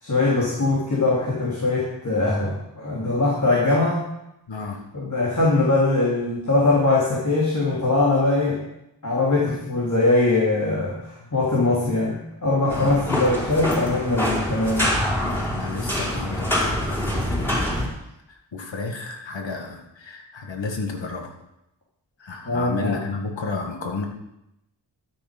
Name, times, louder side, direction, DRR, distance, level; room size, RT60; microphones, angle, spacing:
voice 1, 0.0-4.0 4.9-8.6 9.0-14.9 22.5-23.0, left 2 dB, 40° left, -5 dB, 3.7 m, -21 dB
voice 2, 4.5-4.8 9.5-9.6 11.2-11.3 12.7-13.0 15.5-17.9 18.3-21.3 22.2-24.1, left 4 dB, 80° left, 2 dB, 2.0 m, -32 dB
sound 1, 12.7-17.9, left 1 dB, 5° left, 4.9 m, -25 dB
12.5 x 10.0 x 5.4 m, 0.86 s
wide cardioid pair, 65°, 44 cm